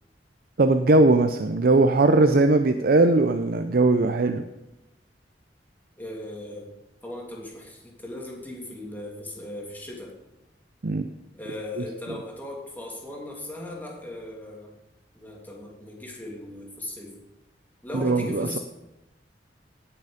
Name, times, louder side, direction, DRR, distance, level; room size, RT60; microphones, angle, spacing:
voice 1, 0.6-4.5 10.8-11.1 17.9-18.6, right 2 dB, 55° right, 8 dB, 0.6 m, -20 dB
voice 2, 6.0-6.7 7.0-10.2 11.3-14.8 15.1-17.2 17.8-18.6, left 1 dB, 10° left, -2 dB, 2.9 m, -38 dB
18.5 x 6.7 x 5.1 m, 0.95 s
head